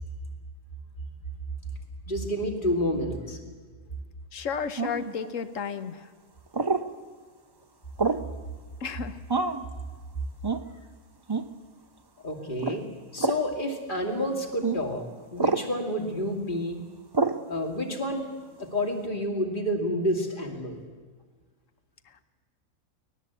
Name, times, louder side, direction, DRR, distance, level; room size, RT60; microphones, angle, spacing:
voice 1, 2.1-3.4 12.2-12.9 13.1-15.0 15.3-16.8 17.5-18.3 18.6-20.8, equal, 35° left, 3 dB, 2.7 m, -29 dB
voice 2, 4.3-6.1 8.8-9.2, left 6 dB, 65° left, 11 dB, 1.4 m, -32 dB
sound 1, 4.8-5.1 6.5-6.9 8.0-8.3 9.3-9.7 10.4-10.6 11.3-11.5 12.6-12.8 13.2-13.4 14.6-14.8 15.4-15.7 17.1-17.4, right 4 dB, 30° right, 0.4 m, -26 dB
23.5 x 18.5 x 8.2 m, 1.5 s
omnidirectional pair, 1.5 m